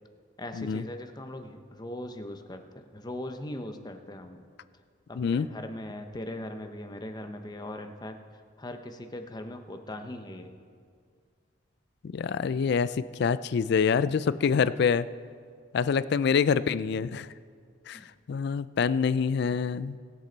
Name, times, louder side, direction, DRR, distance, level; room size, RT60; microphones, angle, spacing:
voice 1, 0.4-4.4 5.1-10.5 17.9-18.1, left 1 dB, 20° left, 6 dB, 0.8 m, -40 dB
voice 2, 5.2-5.5 12.0-15.1 15.7-17.3 17.9-18.0 18.3-20.0, left 6 dB, 55° left, 16 dB, 0.3 m, -26 dB
22.5 x 7.5 x 4.0 m, 2.1 s
head